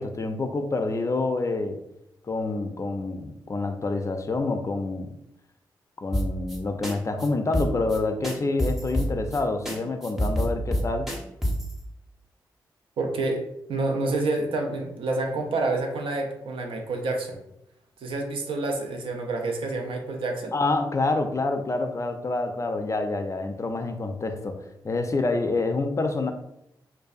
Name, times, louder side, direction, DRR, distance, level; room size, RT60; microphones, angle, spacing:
voice 1, 0.0-1.8 2.3-5.1 6.0-11.1 20.5-24.6 24.8-26.3, left 3 dB, 35° left, 6 dB, 0.4 m, -27 dB
sound 1, 6.1-6.6 6.8-6.9 7.2-7.3 7.5-9.4 9.7-9.8 10.0-11.7, equal, ahead, 0.7 m, -26 dB
voice 2, 13.0-13.4 13.7-17.4 18.0-20.5, right 2 dB, 70° right, 3 dB, 0.4 m, -28 dB
2.5 x 2.2 x 2.3 m, 0.81 s
supercardioid pair, 40°, 9 cm